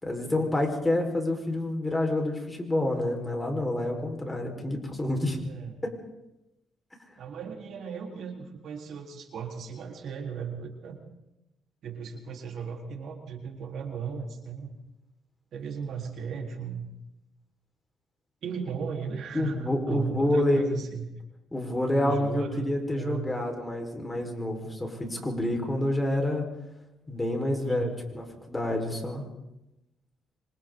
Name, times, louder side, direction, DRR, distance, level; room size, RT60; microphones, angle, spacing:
voice 1, 0.0-5.4 5.8-5.9 19.3-20.6 21.5-26.5 27.1-29.2, left 1 dB, 15° left, 2 dB, 5.1 m, -28 dB
voice 2, 5.4-5.8 7.2-11.0 11.8-14.7 15.5-16.9 18.4-21.1 22.0-23.3 27.6-28.0, right 6 dB, 70° right, 1 dB, 4.2 m, -36 dB
27.0 x 25.5 x 4.1 m, 0.91 s
cardioid pair, 90°, 0 cm